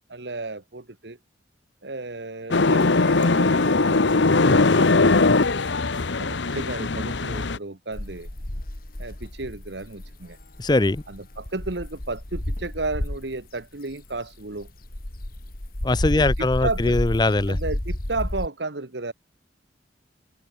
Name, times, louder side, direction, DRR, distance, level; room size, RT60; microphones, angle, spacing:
voice 1, 0.1-1.2 1.8-5.5 6.2-8.3 9.0-10.4 11.1-14.7 16.1-17.0 17.5-19.1, right 3 dB, 65° right, 1.5 m, -33 dB
sound 1, 2.5-7.6, left 3 dB, 75° left, 1.0 m, -20 dB
sound 2, 7.9-13.4 13.9-18.5, left 1 dB, 50° left, 2.3 m, -31 dB
voice 2, 10.6-11.0 15.8-17.6, left 2 dB, 20° left, 0.6 m, -21 dB
head